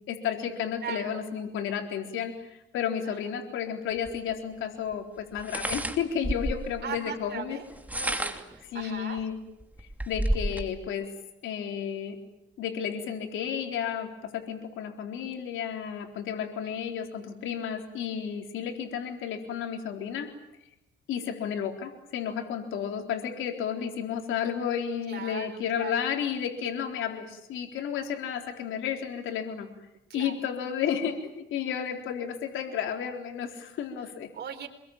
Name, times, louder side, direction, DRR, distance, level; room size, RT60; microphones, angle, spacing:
voice 1, 0.1-7.6 8.7-9.4 10.1-11.1 11.4-12.2 12.6-20.3 21.1-29.7 30.1-34.3, left 8 dB, 85° left, 4 dB, 3.9 m, -32 dB
voice 2, 0.8-1.2 3.1-3.2 6.8-7.6 7.9-9.2 16.6-16.7 25.1-25.9 30.1-30.3 34.3-34.7, right 8 dB, 55° right, 3 dB, 3.9 m, -39 dB
sound 1, 4.0-4.1 5.4-6.7 7.7-8.6 9.2-9.3 9.6-10.7, right 1 dB, 10° right, 2.7 m, -30 dB
27.5 x 21.5 x 9.0 m, 0.85 s
cardioid pair, 90°, 20 cm